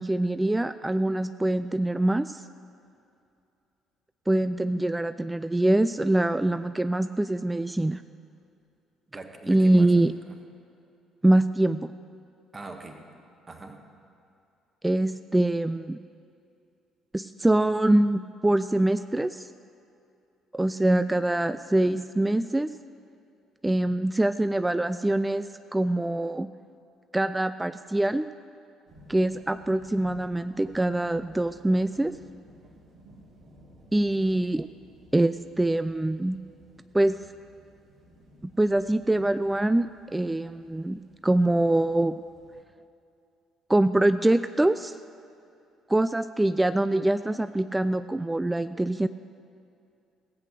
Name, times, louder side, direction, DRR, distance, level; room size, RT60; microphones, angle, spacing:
voice 1, 0.0-2.4 4.3-8.0 9.5-10.1 11.2-11.9 14.8-16.0 17.1-19.5 20.5-22.7 23.6-26.5 27.1-28.3 29.1-32.2 33.9-34.7 35.1-36.4 36.9-37.2 38.4-42.2 43.7-45.0 45.9-49.1, right 1 dB, 10° right, 12 dB, 0.3 m, -24 dB
voice 2, 9.1-10.1 12.5-13.1 13.5-13.9, right 3 dB, 25° right, 4 dB, 1.6 m, -42 dB
sound 1, 28.9-42.6, equal, 55° right, 2.4 m, -55 dB
17.5 x 8.3 x 6.5 m, 2.6 s
figure-of-eight pair, 50°, 0 cm